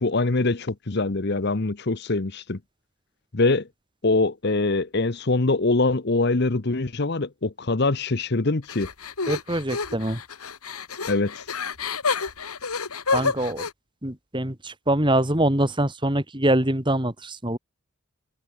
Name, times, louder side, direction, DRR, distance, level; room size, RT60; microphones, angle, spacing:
voice 1, 0.0-2.6 3.3-3.7 4.0-8.9 11.1-11.4, left 3 dB, 50° left, 0.9 m, -23 dB
sound 1, 8.7-13.7, left 4 dB, 90° left, 2.3 m, -29 dB
voice 2, 9.3-10.2 13.1-13.7 14.0-17.6, right 1 dB, 20° right, 2.7 m, -24 dB
open air
head